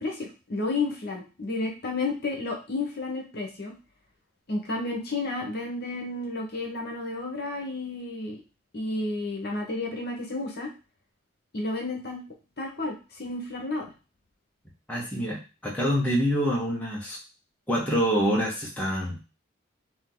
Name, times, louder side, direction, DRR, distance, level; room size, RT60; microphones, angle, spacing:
voice 1, 0.0-3.7 4.5-8.4 8.7-10.7 11.5-12.2 12.6-13.8, left 2 dB, 50° left, 0 dB, 1.1 m, -31 dB
voice 2, 14.9-17.2 17.7-19.2, equal, 10° left, -4 dB, 1.0 m, -26 dB
3.7 x 2.9 x 3.8 m, 0.32 s
head